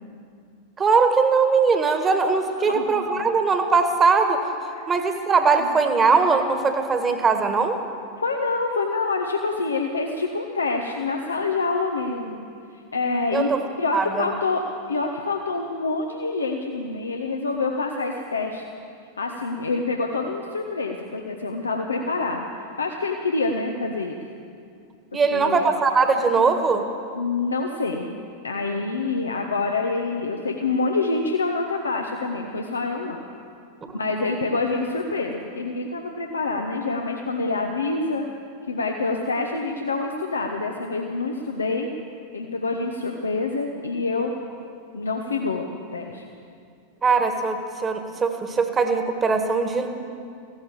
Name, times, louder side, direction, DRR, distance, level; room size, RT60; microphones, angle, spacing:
voice 1, 0.8-4.4 4.9-7.8 13.3-13.6 13.9-14.3 25.1-26.9 33.9-34.0 47.0-49.9, right 4 dB, 20° right, 6 dB, 1.6 m, -20 dB
voice 2, 2.6-3.2 4.7-4.9 5.6-5.7 8.2-12.4 12.7-13.5 13.8-14.6 14.9-18.6 19.2-22.5 22.8-24.2 25.1-25.7 27.1-28.2 28.4-33.2 33.9-38.3 38.7-41.9 42.3-44.3 44.9-46.2, left 3 dB, 75° left, 2 dB, 1.1 m, -26 dB
16.0 x 12.0 x 7.7 m, 2.4 s
figure-of-eight pair, 90°, 0 cm